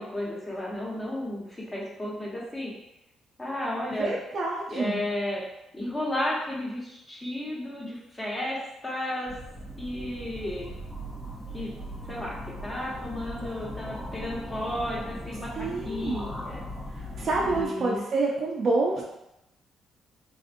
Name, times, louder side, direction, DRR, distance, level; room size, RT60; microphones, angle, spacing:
voice 1, 0.0-1.4 1.7-2.7 3.4-4.1 4.7-5.4 5.7-8.6 8.8-9.3 9.8-10.7 11.5-11.7 12.1-12.4 12.6-15.5 15.8-16.6 17.4-18.0, left 1 dB, 20° left, -5 dB, 1.1 m, -33 dB
voice 2, 3.9-5.0 15.6-16.2 16.9-19.0, right 3 dB, 50° right, -3 dB, 0.4 m, -28 dB
sound 1, 9.3-17.7, equal, 5° left, 0.5 m, -39 dB
3.4 x 2.5 x 2.6 m, 0.87 s
cardioid pair, 90°, 0 cm